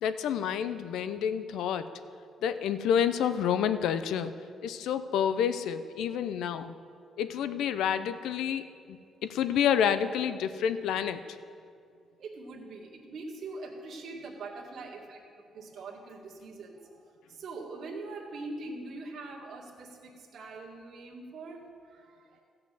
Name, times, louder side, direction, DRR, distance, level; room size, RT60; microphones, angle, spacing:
voice 1, 0.0-1.9 2.4-4.3 4.6-6.7 7.2-11.2, left 8 dB, 85° left, 12 dB, 0.6 m, -29 dB
voice 2, 12.2-15.2 15.5-22.4, right 3 dB, 60° right, -2 dB, 2.0 m, -43 dB
15.0 x 5.8 x 7.7 m, 2.3 s
cardioid pair, 130°, 0 cm